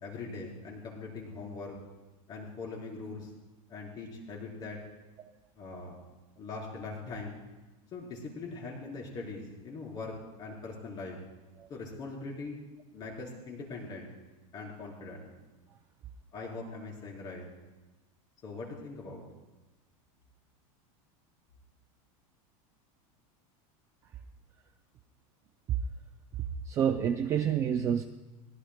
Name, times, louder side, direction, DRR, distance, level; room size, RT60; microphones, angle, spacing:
voice 1, 0.0-1.8 2.3-3.3 3.7-4.8 5.6-6.0 6.4-7.3 7.9-11.2 11.7-12.6 12.9-14.1 14.5-15.3 16.3-17.5 18.4-19.2, left 3 dB, 25° left, -1 dB, 3.9 m, -41 dB
voice 2, 26.7-28.0, right 8 dB, 15° right, 6 dB, 0.4 m, -28 dB
22.5 x 20.0 x 2.2 m, 1.1 s
supercardioid pair, 175°, 18 cm